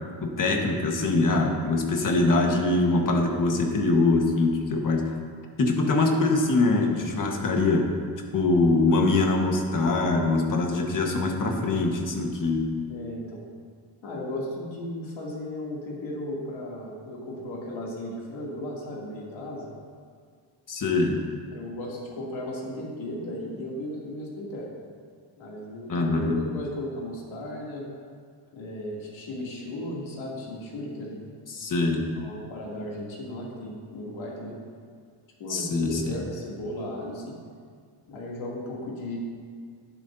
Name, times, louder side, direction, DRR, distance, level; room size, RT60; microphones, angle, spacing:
voice 1, 0.2-5.1 5.6-7.9 8.3-12.7 20.7-21.2 25.9-26.4 31.5-32.0 35.5-36.2, left 2 dB, 40° left, 2 dB, 1.4 m, -23 dB
voice 2, 11.0-11.4 12.9-13.4 14.0-19.7 21.5-24.7 25.4-27.9 28.5-31.3 32.1-34.6 35.4-37.4 38.1-39.2, left 1 dB, 80° left, -4 dB, 2.8 m, -35 dB
11.5 x 11.0 x 2.7 m, 2.1 s
cardioid pair, 140°, 47 cm